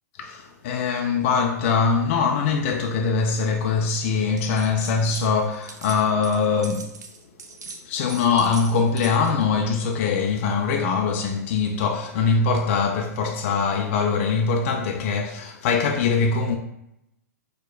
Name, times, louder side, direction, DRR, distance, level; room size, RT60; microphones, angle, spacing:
voice 1, 0.2-7.0 7.7-16.6, left 5 dB, 45° left, 0.4 m, -22 dB
sound 1, 4.4-5.3 5.5-9.4, right 4 dB, 80° right, 0.4 m, -41 dB
4.5 x 2.2 x 2.2 m
figure-of-eight pair, 110°, 9 cm